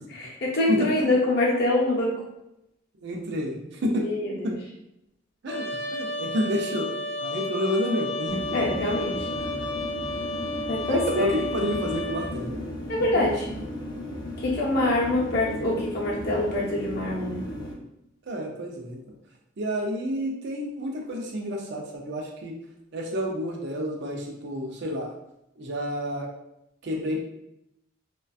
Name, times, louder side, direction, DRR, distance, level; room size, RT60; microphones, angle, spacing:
voice 1, 0.1-2.1 3.9-4.5 8.5-9.3 10.7-11.3 12.9-13.5 14.4-17.4, left 2 dB, 55° left, -4 dB, 0.7 m, -25 dB
voice 2, 0.7-1.1 3.0-4.1 4.4-4.6 5.4-5.7 5.9-6.9 7.2-8.9 9.3-9.7 10.9-12.6 13.1-13.3 18.3-19.0 19.6-22.6 22.9-25.1 25.6-26.3 26.8-27.3, equal, 60° right, 1 dB, 0.5 m, -30 dB
Trumpet, 5.5-12.3, left 1 dB, 90° left, 0.5 m, -32 dB
sound 1, 8.3-17.7, left 1 dB, 20° left, 0.5 m, -35 dB
2.5 x 2.2 x 2.3 m, 0.83 s
head